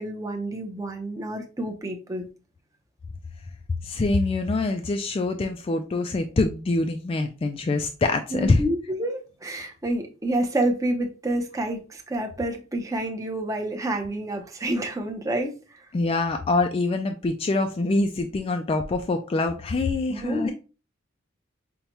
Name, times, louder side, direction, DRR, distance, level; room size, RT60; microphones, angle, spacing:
voice 1, 0.0-2.2 8.3-15.5 20.1-20.5, right 1 dB, 15° right, 0.6 m, -28 dB
voice 2, 3.8-8.6 15.9-20.5, left 3 dB, 30° left, 0.3 m, -25 dB
5.4 x 2.2 x 2.9 m
head